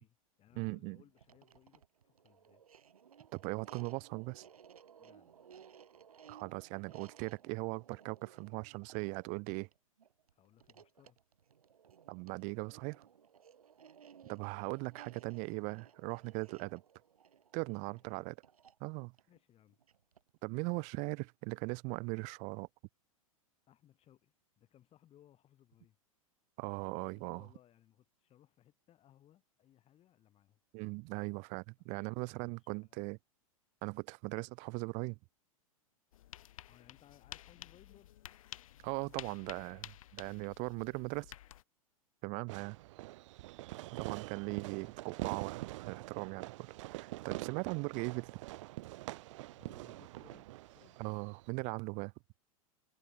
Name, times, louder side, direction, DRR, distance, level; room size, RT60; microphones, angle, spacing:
voice 1, 0.0-2.6 5.0-5.5 10.3-11.2 17.9-18.3 19.3-19.8 23.7-26.0 27.1-30.6 31.8-33.1 36.7-38.2 42.5-42.7 43.8-44.4 49.5-51.0, left 12 dB, 30° left, 6.9 m, -65 dB
voice 2, 0.6-1.0 3.3-4.4 6.3-9.7 12.1-13.1 14.3-16.8 17.5-18.3 18.8-19.1 20.4-22.7 26.6-27.4 30.7-33.2 33.8-35.2 38.8-41.3 42.2-42.8 44.0-48.4 51.0-52.1, right 31 dB, 40° right, 0.5 m, -39 dB
sound 1, 1.1-20.4, right 8 dB, 80° right, 5.5 m, -60 dB
sound 2, 36.1-41.6, left 13 dB, 65° left, 1.9 m, -51 dB
Fireworks, 42.5-51.5, right 18 dB, 55° right, 0.9 m, -45 dB
hypercardioid pair, 100°, 19 cm